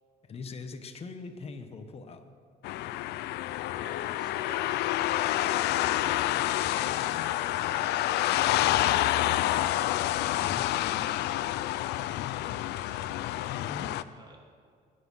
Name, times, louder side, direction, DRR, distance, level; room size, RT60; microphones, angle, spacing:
voice 1, 0.2-2.2 10.3-10.7 13.6-14.0, left 4 dB, 35° left, 7 dB, 1.2 m, -42 dB
sound 1, 2.6-14.0, left 14 dB, 80° left, 0.5 m, -28 dB
voice 2, 3.3-6.1 6.7-9.8 10.4-11.6 12.0-13.3 14.1-14.4, right 2 dB, 25° right, 0 dB, 2.9 m, -52 dB
21.0 x 9.6 x 5.6 m, 2.1 s
cardioid pair, 110°, 17 cm